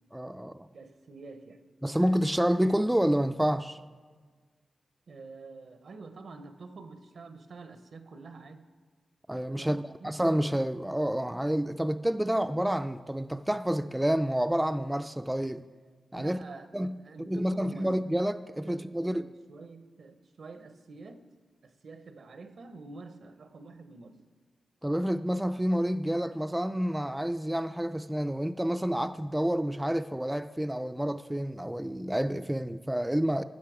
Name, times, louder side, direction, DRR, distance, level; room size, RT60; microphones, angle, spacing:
voice 1, 0.1-0.7 1.8-3.8 9.3-15.6 16.1-16.4 16.7-16.9 17.3-19.3 24.8-33.4, equal, 10° right, 0.3 m, -29 dB
voice 2, 0.7-1.6 5.1-8.7 9.6-10.1 16.1-17.9 18.6-21.3 21.6-24.3, right 3 dB, 70° right, 0.8 m, -47 dB
15.0 x 6.3 x 4.9 m
cardioid pair, 75°, 0 cm